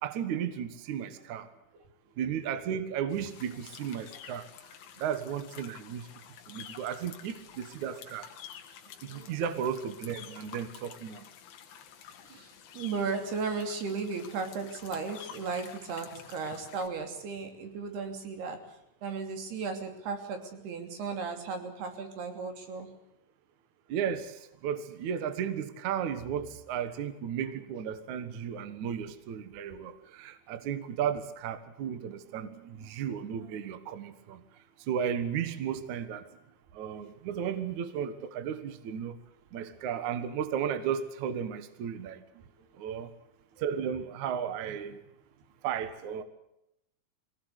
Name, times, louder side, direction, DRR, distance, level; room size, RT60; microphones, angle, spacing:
voice 1, 0.0-1.5 2.2-4.5 5.0-6.1 6.5-8.2 9.0-11.2 23.9-34.4 34.8-36.4 36.7-39.2 39.5-42.2 42.8-43.1 43.6-45.0 45.6-46.2, right 8 dB, 75° right, 11 dB, 1.7 m, -34 dB
sound 1, 3.1-16.9, left 9 dB, 70° left, 3.9 m, -50 dB
voice 2, 8.8-9.3 12.2-18.6 19.0-22.9 42.3-42.8, right 4 dB, 55° right, 6 dB, 4.7 m, -36 dB
23.5 x 18.5 x 8.2 m, 0.83 s
omnidirectional pair, 5.8 m